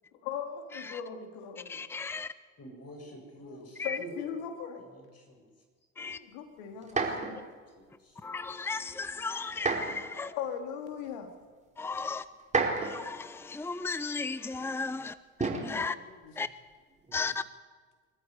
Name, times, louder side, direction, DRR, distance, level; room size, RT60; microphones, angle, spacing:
voice 1, 0.2-1.8 3.4-4.8 6.0-7.4 10.1-11.3 15.7-16.4, left 7 dB, 75° left, 3.3 m, -39 dB
voice 2, 1.7-2.3 3.8-4.0 6.0-6.2 8.2-10.3 11.8-12.2 12.8-15.1 15.6-15.9 16.4-16.5 17.1-17.4, left 4 dB, 5° left, 0.8 m, -35 dB
voice 3, 2.6-4.3 4.8-5.4 6.7-7.2 7.7-8.2, equal, 40° left, 7.8 m, -48 dB
sound 1, 6.8-7.4 9.5-10.1 11.1-11.2 12.4-13.1 15.4-15.8 17.0-17.4, right 3 dB, 15° right, 4.7 m, -30 dB
23.5 x 14.0 x 9.8 m
hypercardioid pair, 70°, 40 cm